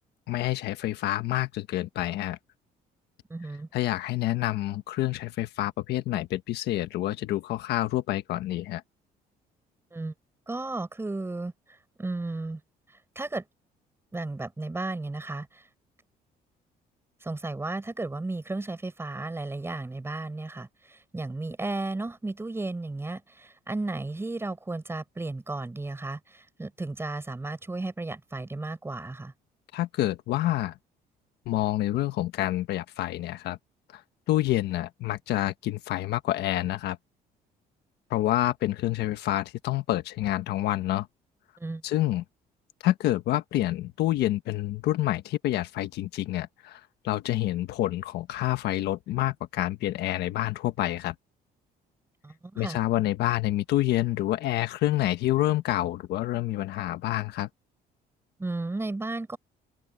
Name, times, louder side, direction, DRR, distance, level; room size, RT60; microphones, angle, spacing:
voice 1, 0.3-2.4 3.7-8.8 29.7-30.7 31.4-33.6 33.9-34.0 34.3-37.0 38.1-41.1 41.8-42.2 42.8-51.1 52.6-57.5, left 15 dB, 75° left, 1.5 m, -28 dB
voice 2, 3.3-3.7 9.9-10.1 10.5-11.5 12.0-12.6 13.2-13.4 14.1-15.6 17.2-29.3 41.6-41.8 52.2-52.8 58.4-59.4, right 2 dB, 15° right, 6.0 m, -34 dB
cardioid pair, 110°, 17 cm